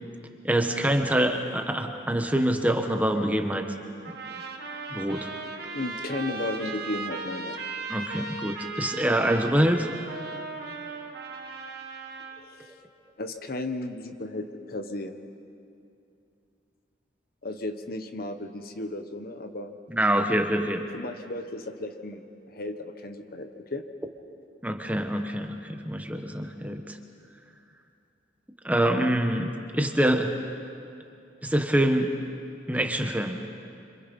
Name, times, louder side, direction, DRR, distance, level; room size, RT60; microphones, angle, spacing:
voice 1, 0.4-3.6 4.9-5.3 7.9-9.9 19.9-20.8 24.6-27.0 28.6-30.3 31.4-32.2 32.7-33.4, right 1 dB, 10° right, 4 dB, 1.3 m, -25 dB
sound 1, 4.0-12.4, right 4 dB, 60° right, 2.0 m, -37 dB
voice 2, 5.7-7.6 12.3-12.8 13.2-15.1 17.4-19.7 20.9-22.2 22.5-23.8, left 2 dB, 55° left, 7 dB, 1.3 m, -34 dB
26.5 x 26.5 x 5.5 m, 2.5 s
head